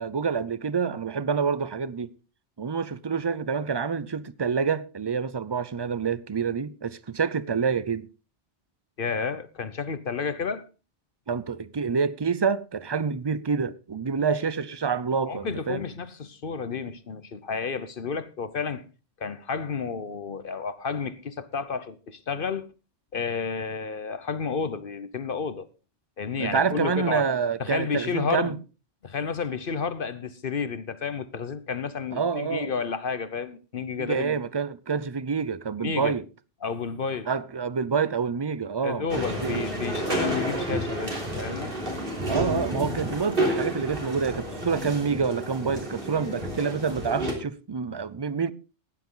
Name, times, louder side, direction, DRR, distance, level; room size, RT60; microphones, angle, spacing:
voice 1, 0.0-2.1 2.6-8.1 11.3-15.8 26.4-28.6 32.1-32.7 34.0-36.2 37.3-39.7 42.3-48.5, right 5 dB, 30° right, 0.5 m, -27 dB
voice 2, 9.0-10.7 15.3-18.8 19.2-22.7 23.1-25.7 26.2-27.3 27.6-28.5 29.0-34.4 35.8-36.1 36.6-37.3 38.8-41.7, left 5 dB, 50° left, 1.0 m, -31 dB
sound 1, 39.1-47.3, right 1 dB, 50° right, 3.6 m, -30 dB
15.5 x 10.5 x 3.8 m
omnidirectional pair, 1.2 m